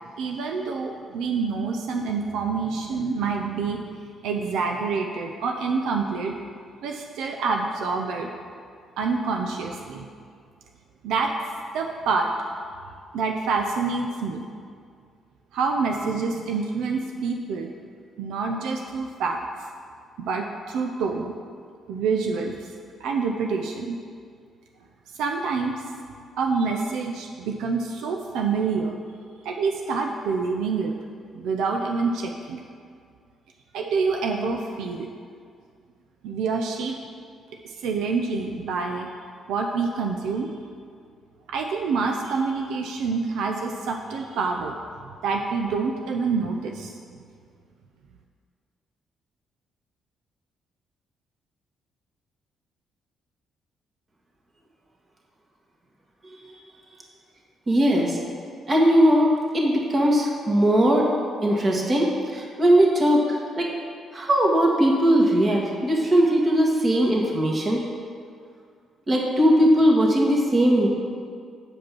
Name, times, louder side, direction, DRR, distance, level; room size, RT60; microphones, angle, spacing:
voice 1, 0.2-6.4 6.8-8.3 9.0-10.1 11.0-11.3 11.7-12.3 13.1-14.4 15.5-17.7 18.2-19.4 20.2-21.3 21.9-22.7 23.0-24.0 25.2-25.7 26.4-28.9 29.4-30.9 31.3-32.6 33.7-35.1 36.2-37.0 37.8-39.1 39.5-40.5 41.5-44.8 45.2-47.0, right 4 dB, 85° right, 2 dB, 0.5 m, -27 dB
voice 2, 57.7-58.2 58.7-61.0 61.4-62.1 62.3-63.7 64.1-67.8 69.1-70.9, equal, 35° right, -2 dB, 1.8 m, -19 dB
8.6 x 5.1 x 6.2 m, 2.2 s
cardioid pair, 90°, 0 cm